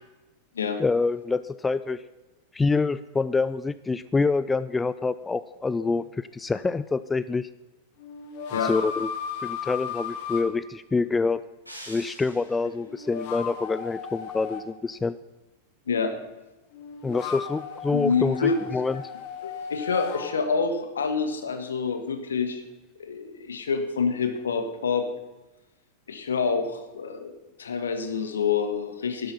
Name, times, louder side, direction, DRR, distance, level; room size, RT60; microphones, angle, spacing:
voice 1, 0.8-2.0 2.5-7.5 8.5-9.1 9.4-11.4 11.9-15.2 17.0-19.1, left 4 dB, 10° left, 15 dB, 0.3 m, -26 dB
sound 1, 5.9-6.0 8.0-10.4 12.8-14.6 16.7-20.3, left 7 dB, 50° left, 1.7 m, -35 dB
sound 2, 11.7-12.9, equal, 85° right, 2.6 m, -44 dB
voice 2, 17.9-18.6 19.4-22.6 23.0-25.1 26.1-27.3 27.6-29.3, left 5 dB, 70° left, 7 dB, 1.7 m, -27 dB
12.0 x 11.5 x 5.7 m, 1.1 s
figure-of-eight pair, 90°, 0 cm